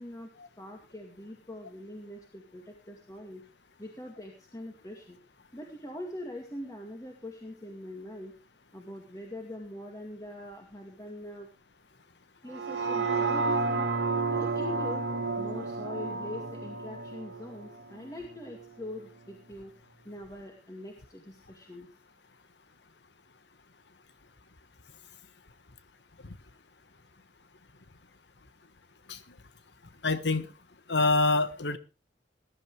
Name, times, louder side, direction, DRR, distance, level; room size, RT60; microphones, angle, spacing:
voice 1, 0.6-3.4 3.8-5.2 5.5-8.3 8.7-11.5 12.4-15.1 15.4-19.7 20.0-21.9, left 1 dB, 20° left, 1 dB, 2.2 m, -43 dB
sound 1, 12.5-18.6 19.1-19.2, right 4 dB, 85° right, 1.9 m, -31 dB
voice 2, 30.0-30.5 30.9-31.8, left 3 dB, 80° left, 12 dB, 1.3 m, -26 dB
20.0 x 11.0 x 3.3 m, 0.30 s
head